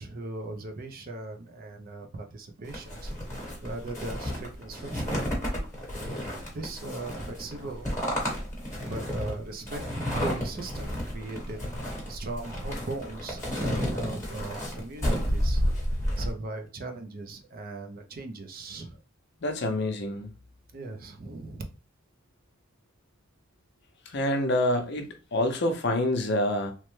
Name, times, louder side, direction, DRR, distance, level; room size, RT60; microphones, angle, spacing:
voice 1, 0.0-3.1 3.6-5.2 6.5-7.9 8.9-9.8 10.1-15.6 16.2-18.9 20.7-21.6, right 2 dB, 40° right, 0.5 m, -38 dB
sound 1, 2.7-16.3, equal, 15° left, 1.2 m, -31 dB
voice 2, 19.4-20.3 24.1-26.7, left 1 dB, 50° left, 0.6 m, -27 dB
3.1 x 2.1 x 3.1 m
head